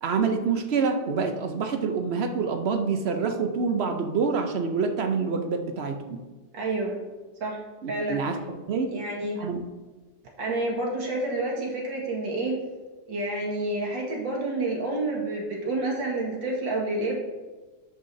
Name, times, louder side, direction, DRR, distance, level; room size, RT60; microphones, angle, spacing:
voice 1, 0.0-6.2 7.8-8.4 8.7-8.9 9.4-9.6, right 5 dB, 55° right, 5 dB, 0.7 m, -26 dB
voice 2, 6.5-7.0 7.4-7.6 7.9-8.2 8.9-9.4 10.4-12.6 13.1-17.2, right 2 dB, 90° right, -2 dB, 2.5 m, -29 dB
12.0 x 8.4 x 2.7 m, 1.3 s
omnidirectional pair, 2.0 m